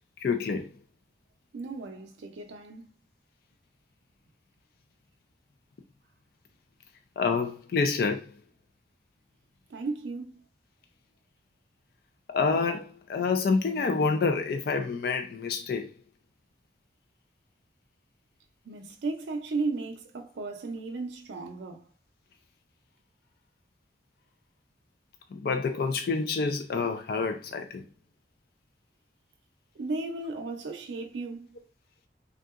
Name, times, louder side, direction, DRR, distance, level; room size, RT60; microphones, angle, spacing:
voice 1, 0.2-0.7 7.2-8.3 12.3-15.9 25.3-27.8, left 4 dB, 55° left, 0.3 m, -27 dB
voice 2, 1.5-2.9 9.7-10.4 18.7-21.9 29.7-31.5, right 3 dB, 85° right, 0.4 m, -35 dB
3.4 x 2.8 x 2.4 m
head